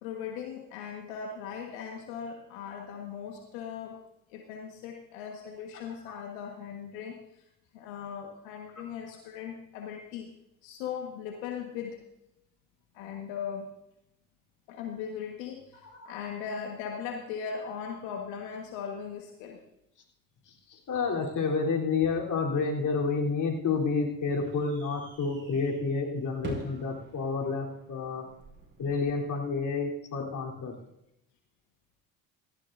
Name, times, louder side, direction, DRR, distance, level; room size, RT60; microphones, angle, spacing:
voice 1, 0.0-4.0 4.3-7.4 7.7-10.3 10.6-12.0 12.9-13.7 14.7-19.6 22.0-22.1, left 7 dB, 90° left, 2 dB, 1.7 m, -39 dB
voice 2, 20.7-28.2 28.8-30.7, left 4 dB, 50° left, 0 dB, 3.8 m, -29 dB
sound 1, 23.5-29.1, right 2 dB, 30° right, 5.2 m, -47 dB
17.0 x 14.0 x 2.7 m, 0.83 s
supercardioid pair, 80°, 38 cm